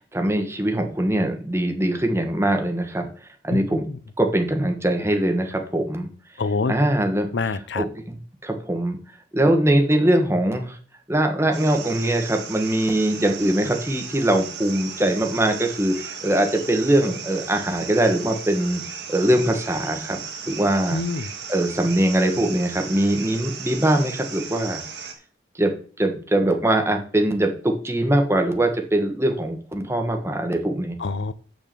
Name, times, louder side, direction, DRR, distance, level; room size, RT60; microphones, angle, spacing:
voice 1, 0.0-3.1 3.4-3.8 4.2-6.1 6.7-7.3 7.7-8.2 8.4-9.0 9.3-10.8 11.1-18.8 19.1-20.2 20.5-21.0 21.5-24.8 25.5-25.7 26.0-31.0, right 1 dB, 15° right, 4 dB, 1.3 m, -22 dB
voice 2, 6.4-6.7 7.3-7.9 20.9-21.3 31.0-31.3, left 4 dB, 85° left, 15 dB, 0.6 m, -25 dB
sound 1, 11.5-25.1, right 6 dB, 75° right, 1.6 m, -36 dB
6.7 x 6.2 x 6.7 m, 0.42 s
head